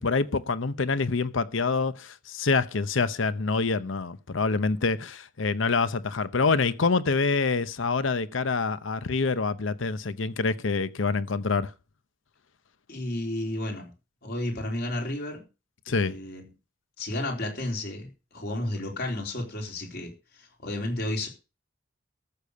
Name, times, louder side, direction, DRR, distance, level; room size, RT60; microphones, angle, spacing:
voice 1, 0.0-11.7 15.9-16.1, left 4 dB, 80° left, 0.8 m, -26 dB
voice 2, 12.9-13.9 14.2-15.4 15.9-16.4 17.0-21.3, left 1 dB, 55° left, 4.1 m, -32 dB
13.5 x 6.7 x 6.6 m
head